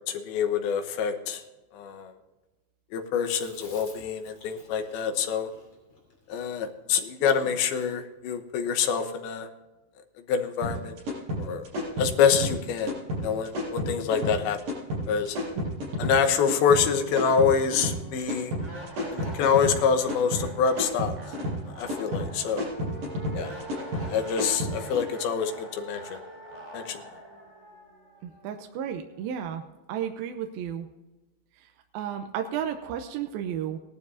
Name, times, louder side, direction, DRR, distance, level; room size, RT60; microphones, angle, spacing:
voice 1, 0.1-1.4 1.7-2.1 2.9-5.5 6.3-9.5 10.3-10.9 11.4-11.6 12.0-12.9 13.2-14.6 15.1-15.4 16.0-18.5 19.1-21.2 21.8-22.7 23.3-23.5 24.1-26.2 26.7-27.0, left 7 dB, 90° left, 7 dB, 3.0 m, -26 dB
Chewing mastication, 3.2-7.6, left 2 dB, 40° left, 3.7 m, -51 dB
sound 1, 10.6-25.1, equal, 65° right, 6.2 m, -31 dB
sound 2, 15.5-15.6 16.0-29.0, right 1 dB, 10° right, 3.9 m, -44 dB
voice 2, 28.2-29.6 29.9-30.9 31.9-33.8, right 9 dB, 85° right, 5 dB, 2.6 m, -33 dB
18.5 x 12.0 x 2.7 m, 1.1 s
omnidirectional pair, 4.2 m